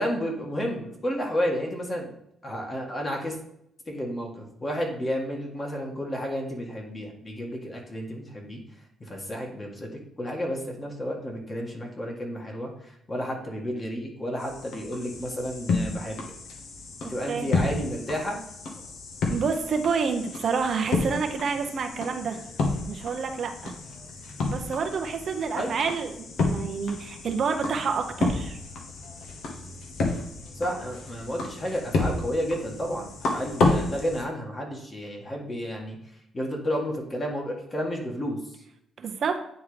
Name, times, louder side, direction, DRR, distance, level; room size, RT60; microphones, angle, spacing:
voice 1, 0.0-2.1 2.4-3.4 3.9-8.6 9.0-16.3 17.1-18.4 25.5-25.7 30.6-36.0 36.3-38.4, equal, 25° left, 0 dB, 1.7 m, -31 dB
sound 1, 14.4-34.2, left 3 dB, 75° left, 1.2 m, -31 dB
voice 2, 17.0-17.5 19.3-22.4 22.9-23.7 24.5-28.6 39.0-39.4, right 5 dB, 55° right, 5 dB, 0.7 m, -28 dB
9.3 x 3.6 x 3.2 m, 0.77 s
cardioid pair, 90°, 0 cm